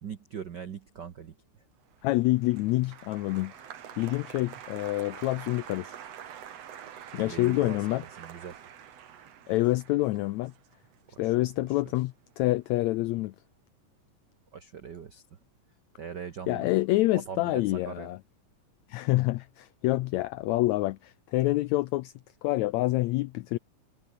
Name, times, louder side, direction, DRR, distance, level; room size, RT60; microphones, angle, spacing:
voice 1, 0.0-1.3 7.2-8.6 11.1-11.7 14.5-15.2 16.0-16.7 17.1-18.1, right 7 dB, 90° right, 0.9 m, -41 dB
Applause, 1.9-12.3 12.6-13.2, right 9 dB, 55° right, 2.6 m, -46 dB
voice 2, 2.0-3.5 4.0-5.9 7.1-8.0 9.5-10.5 11.2-13.3 16.5-18.2 18.9-22.1 22.4-23.6, left 18 dB, 85° left, 1.6 m, -27 dB
omnidirectional pair, 3.8 m